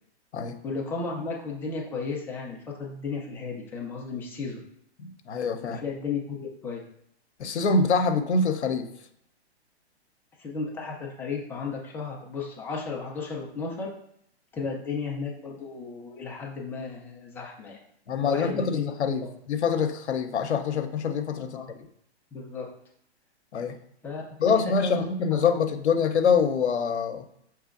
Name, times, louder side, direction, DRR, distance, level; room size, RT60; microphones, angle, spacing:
voice 1, 0.6-4.6 5.6-6.8 10.4-13.9 14.5-17.8 18.2-18.9 19.2-19.3 21.4-21.7 22.3-22.7 24.0-25.6, left 4 dB, 5° left, -2 dB, 0.4 m, -34 dB
voice 2, 5.0-5.8 7.4-8.9 18.1-19.2 19.5-21.8 23.5-23.8 24.4-27.2, left 5 dB, 80° left, 7 dB, 0.7 m, -25 dB
5.6 x 3.0 x 2.4 m, 0.72 s
hypercardioid pair, 130°, 33 cm